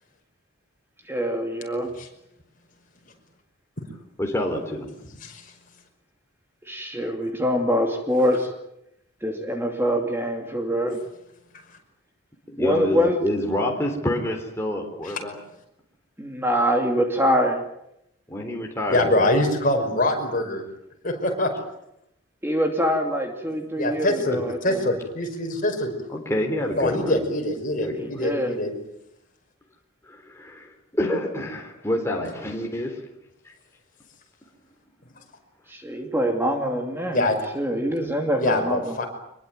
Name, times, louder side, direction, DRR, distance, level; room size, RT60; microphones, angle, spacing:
voice 1, 1.1-1.9 6.7-8.5 9.2-11.0 12.6-13.2 16.2-17.6 22.4-24.8 27.9-28.6 35.7-37.3 37.5-39.0, equal, 10° right, 3 dB, 2.6 m, -24 dB
voice 2, 4.2-4.9 12.5-15.4 18.3-19.2 26.1-27.2 27.8-28.2 30.0-33.0 33.4-33.5, left 1 dB, 15° left, 1 dB, 3.7 m, -27 dB
voice 3, 5.2-5.5 15.0-15.2 18.9-20.6 21.0-21.5 23.8-25.9 26.8-28.7 37.1-37.4 38.4-39.1, left 1 dB, 40° left, 3 dB, 5.5 m, -24 dB
25.0 x 22.0 x 9.3 m, 0.82 s
head